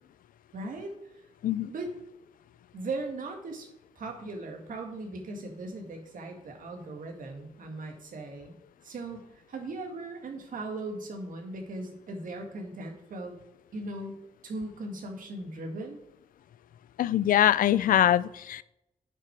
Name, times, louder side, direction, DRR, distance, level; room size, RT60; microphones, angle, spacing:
voice 1, 0.5-0.9 1.7-1.9 2.7-3.7 4.0-8.6 8.8-13.4 13.7-16.0, right 2 dB, 75° right, 3 dB, 2.1 m, -38 dB
voice 2, 17.0-18.6, left 11 dB, 90° left, 17 dB, 0.4 m, -23 dB
9.5 x 6.0 x 4.7 m, 0.83 s
wide cardioid pair, 120°, 14 cm